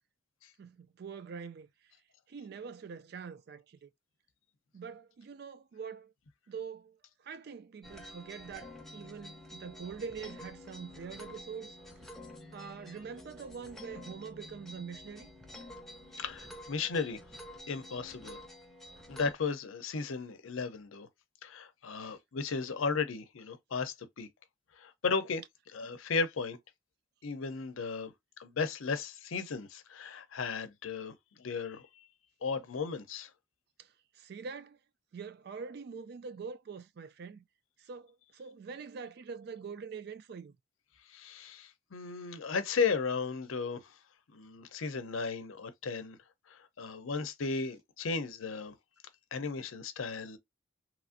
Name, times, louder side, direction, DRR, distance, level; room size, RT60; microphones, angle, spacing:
voice 1, 0.6-1.7 2.3-3.9 4.7-6.1 6.5-11.8 12.5-15.3 33.8-34.8 35.1-37.4 37.8-40.6, right 6 dB, 50° right, 0.3 m, -44 dB
sound 1, 7.8-19.3, left 1 dB, ahead, 0.5 m, -49 dB
voice 2, 16.2-17.2 17.7-18.4 19.1-21.1 21.4-24.3 24.8-25.4 25.7-26.6 27.2-28.1 28.4-31.9 32.4-33.3 41.1-43.9 44.3-46.2 46.5-48.7 49.3-50.4, left 5 dB, 90° left, 0.6 m, -35 dB
3.0 x 2.5 x 2.5 m
head